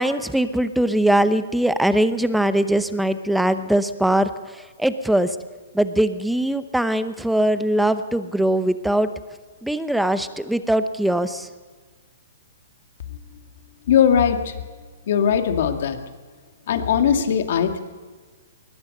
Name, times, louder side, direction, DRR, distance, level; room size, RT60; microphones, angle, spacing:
voice 1, 0.0-5.4 5.7-9.1 9.6-11.5, right 1 dB, ahead, 11 dB, 0.8 m, -21 dB
voice 2, 13.9-14.5 15.1-16.0 16.7-17.8, left 8 dB, 60° left, 6 dB, 2.1 m, -19 dB
21.5 x 19.5 x 6.7 m, 1.4 s
hypercardioid pair, 160°, 0 cm